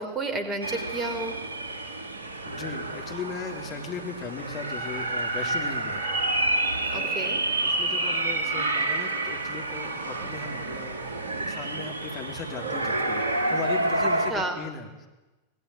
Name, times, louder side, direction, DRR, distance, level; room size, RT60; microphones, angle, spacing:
voice 1, 0.0-1.4 6.9-7.4 14.3-14.6, right 2 dB, 20° right, 8 dB, 3.8 m, -31 dB
sound 1, 0.6-14.3, right 2 dB, 65° right, 2.6 m, -29 dB
voice 2, 2.5-6.2 6.9-7.1 7.6-15.1, left 5 dB, 30° left, 3 dB, 3.5 m, -38 dB
26.0 x 20.0 x 9.3 m, 1.1 s
figure-of-eight pair, 90°, 0 cm